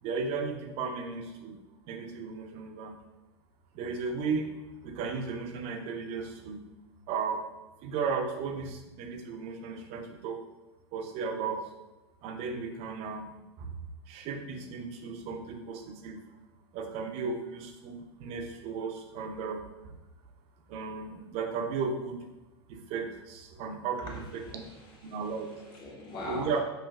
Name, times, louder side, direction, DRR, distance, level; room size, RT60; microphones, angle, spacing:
voice 1, 0.0-1.6 1.9-3.0 3.7-4.5 4.8-6.6 7.1-7.4 7.8-10.4 10.9-11.6 12.2-13.3 13.6-13.7 14.1-16.2 16.7-19.6 20.7-22.2 22.7-24.6 25.0-25.5 26.3-26.6, right 5 dB, 45° right, 5 dB, 0.6 m, -35 dB
voice 2, 24.0-26.5, left 1 dB, 35° left, -2 dB, 1.2 m, -42 dB
5.5 x 2.5 x 2.4 m, 1.0 s
hypercardioid pair, 95°, 14 cm